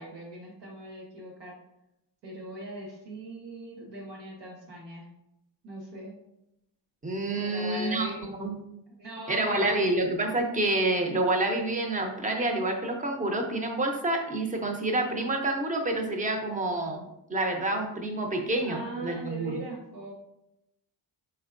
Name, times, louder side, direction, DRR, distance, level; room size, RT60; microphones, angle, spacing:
voice 1, 0.0-1.5 2.2-5.0 5.6-6.1 7.3-8.2 9.0-9.9 18.6-20.1, right 1 dB, 80° right, -2 dB, 1.6 m, -40 dB
voice 2, 7.0-8.6 9.3-19.6, right 2 dB, 20° right, 3 dB, 0.6 m, -28 dB
4.4 x 4.3 x 2.5 m, 0.85 s
wide cardioid pair, 140°, 42 cm